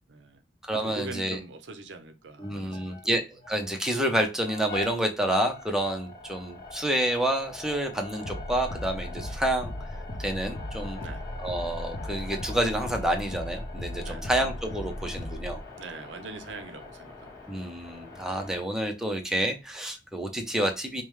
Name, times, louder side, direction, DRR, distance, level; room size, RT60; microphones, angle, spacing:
voice 1, 0.1-0.4 0.8-3.2 3.7-3.8 11.0-11.3 14.0-14.3 15.7-17.6, right 3 dB, 85° right, 0.6 m, -43 dB
voice 2, 0.6-1.4 2.4-9.7 10.2-11.0 11.4-15.6 17.5-21.0, right 1 dB, 5° right, 0.6 m, -29 dB
sound 1, 2.4-3.1 3.4-18.6, left 2 dB, 20° left, 1.6 m, -44 dB
sound 2, 8.2-15.6, left 1 dB, 50° left, 0.6 m, -37 dB
5.1 x 2.2 x 3.1 m
head